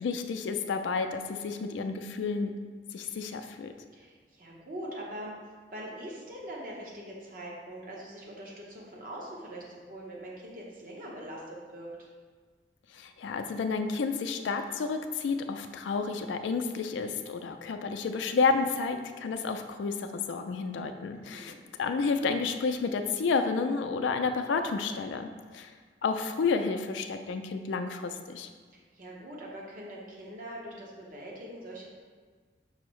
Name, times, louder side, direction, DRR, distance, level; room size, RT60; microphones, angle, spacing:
voice 1, 0.0-2.5 2.9-3.7 12.9-21.5 21.8-25.7 26.0-28.5, left 4 dB, 80° left, 7 dB, 0.3 m, -30 dB
voice 2, 3.9-5.3 5.7-12.1 21.1-21.5 28.7-31.9, right 1 dB, 45° right, -3 dB, 0.8 m, -43 dB
5.5 x 2.0 x 4.5 m, 1.5 s
head